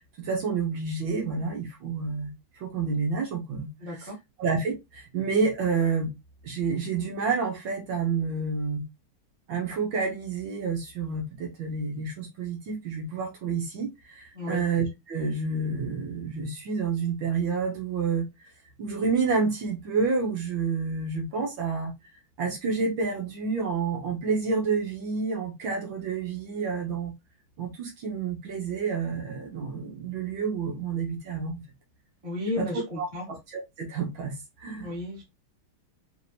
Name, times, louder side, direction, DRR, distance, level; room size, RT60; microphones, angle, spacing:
voice 1, 0.2-2.3 2.6-4.1 4.4-6.1 6.4-8.8 9.5-18.2 18.8-21.9 22.4-27.1 27.6-31.6 32.6-32.7 33.0-34.4 34.6-34.9, right 5 dB, 65° right, 1.8 m, -29 dB
voice 2, 3.8-4.2 14.3-14.6 32.2-33.3 34.8-35.2, left 2 dB, 15° right, 1.4 m, -33 dB
4.9 x 2.7 x 2.7 m
omnidirectional pair, 2.4 m